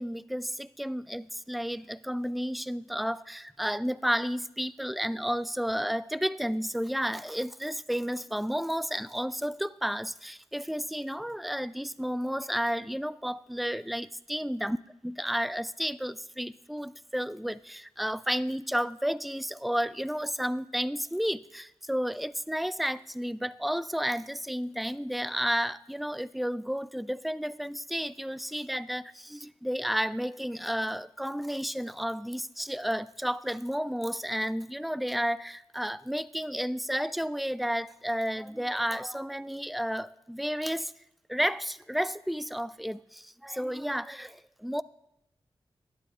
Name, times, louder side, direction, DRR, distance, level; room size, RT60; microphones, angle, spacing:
voice 1, 0.0-14.8 15.0-40.9 41.3-44.8, equal, ahead, 18 dB, 0.3 m, -32 dB
12.0 x 9.0 x 3.5 m, 0.84 s
cardioid pair, 45°, 10 cm